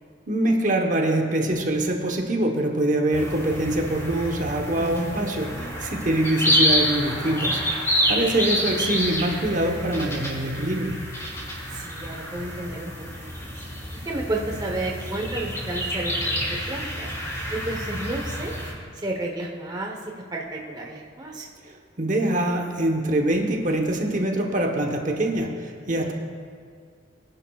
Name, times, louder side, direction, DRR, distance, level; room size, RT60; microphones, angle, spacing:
voice 1, 0.3-7.8 8.1-11.0 21.6-26.1, right 1 dB, 40° right, 2 dB, 1.0 m, -24 dB
sound 1, 3.1-18.7, equal, 15° left, 2.6 m, -28 dB
voice 2, 4.8-5.8 11.7-13.5 14.0-17.1 17.5-18.5 19.0-21.5 26.0-26.1, right 2 dB, 20° right, 0 dB, 0.9 m, -32 dB
22.0 x 10.5 x 2.3 m, 2.2 s
head